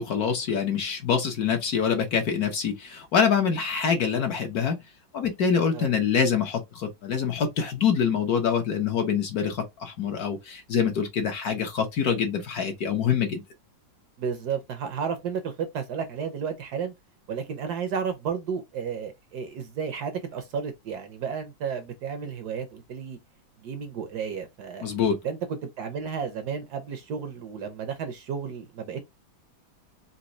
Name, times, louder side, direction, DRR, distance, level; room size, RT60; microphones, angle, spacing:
voice 1, 0.0-4.8 5.1-13.4 24.8-25.2, left 7 dB, 60° left, 1.1 m, -25 dB
voice 2, 14.2-16.9 17.3-23.2 23.6-24.9 25.2-29.0, right 6 dB, 65° right, 1.1 m, -32 dB
4.1 x 2.6 x 2.6 m
omnidirectional pair, 2.1 m